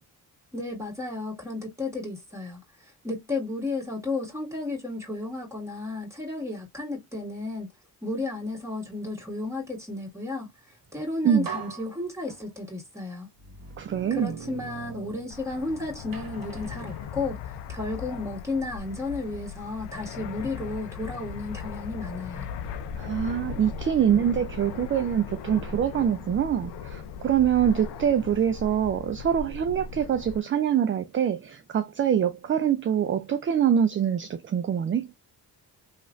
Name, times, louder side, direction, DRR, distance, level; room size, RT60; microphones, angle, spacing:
voice 1, 0.5-7.7 8.0-10.5 10.9-13.3 14.1-22.5, left 2 dB, 5° right, 1.7 m, -33 dB
sound 1, 10.9-11.0 11.4-12.7 13.4-15.7 16.1-17.9, right 6 dB, 55° right, 1.0 m, -42 dB
voice 2, 13.8-14.4 23.0-35.1, right 9 dB, 35° right, 0.4 m, -24 dB
Fixed-wing aircraft airplane, 15.3-30.4, left 6 dB, 85° left, 0.6 m, -38 dB
3.0 x 2.4 x 2.4 m
cardioid pair, 65°, 40 cm